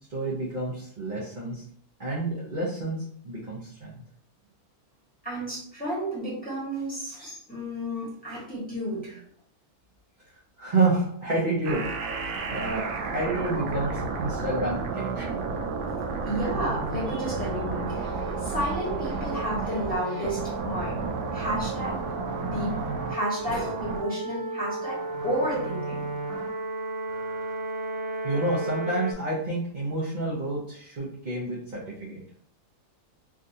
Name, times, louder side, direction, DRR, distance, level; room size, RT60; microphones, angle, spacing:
voice 1, 0.1-1.6 2.0-4.0 10.6-11.8 12.5-12.9 13.1-15.4 28.2-32.2, right 2 dB, 45° right, -6 dB, 0.7 m, -29 dB
voice 2, 5.2-9.2 16.2-22.0 22.4-22.7 23.1-26.0, right 1 dB, 5° left, -8 dB, 1.2 m, -32 dB
sound 1, 11.6-29.1, right 3 dB, 85° right, 1.1 m, -32 dB
3.6 x 2.4 x 2.7 m, 0.62 s
omnidirectional pair, 1.6 m